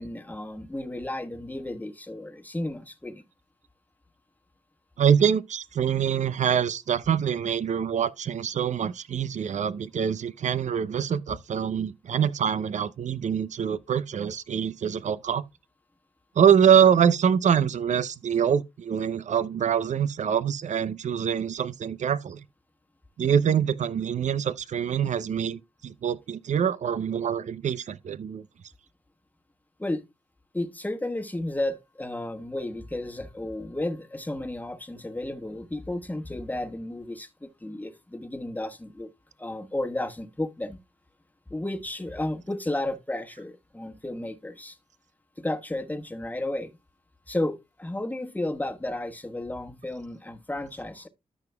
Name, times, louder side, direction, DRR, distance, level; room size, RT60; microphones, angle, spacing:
voice 1, 0.0-3.2 29.8-30.0 30.5-39.1 39.4-40.8 41.5-44.8 45.4-46.7 47.3-51.1, left 1 dB, 10° left, 1.3 m, -33 dB
voice 2, 5.0-15.4 16.4-22.4 23.2-28.4, right 8 dB, 60° right, 0.6 m, -24 dB
13.5 x 5.0 x 2.3 m
supercardioid pair, 50°, 14 cm